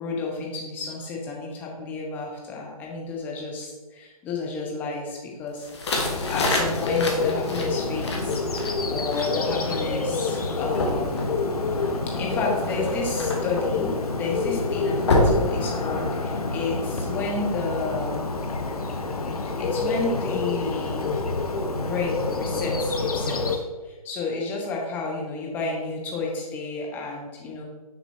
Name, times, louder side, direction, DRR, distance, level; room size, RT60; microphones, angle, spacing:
voice 1, 0.0-5.7 6.3-11.3 12.1-13.9 14.2-18.3 19.6-21.1 21.8-27.6, left 3 dB, 10° left, -1 dB, 0.7 m, -31 dB
sound 1, 5.6-16.3, left 2 dB, 45° left, 1.3 m, -29 dB
Bird, 6.0-23.6, left 3 dB, 80° left, 0.9 m, -27 dB
6.2 x 4.4 x 4.3 m, 1.3 s
hypercardioid pair, 155°, 19 cm